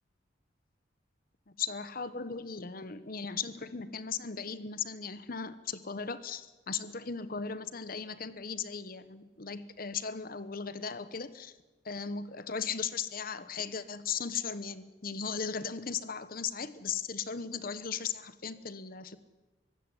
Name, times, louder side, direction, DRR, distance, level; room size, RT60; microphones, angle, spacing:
voice 1, 1.6-11.5 11.8-19.2, left 6 dB, 50° left, 14 dB, 1.1 m, -37 dB
24.0 x 16.0 x 9.8 m, 1.2 s
head